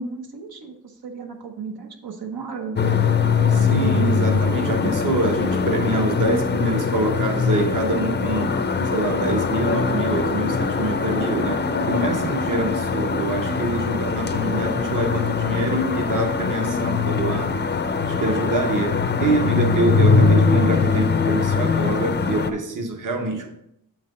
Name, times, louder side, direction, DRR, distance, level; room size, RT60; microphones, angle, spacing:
voice 1, 0.0-2.8, right 4 dB, 85° right, 3 dB, 1.0 m, -34 dB
sound 1, 2.8-22.5, left 5 dB, 30° left, 0.5 m, -22 dB
voice 2, 3.5-8.6 8.8-17.5 17.8-23.6, right 2 dB, 60° right, 4 dB, 1.0 m, -25 dB
7.6 x 5.9 x 3.7 m, 0.77 s
wide cardioid pair, 160°, 35 cm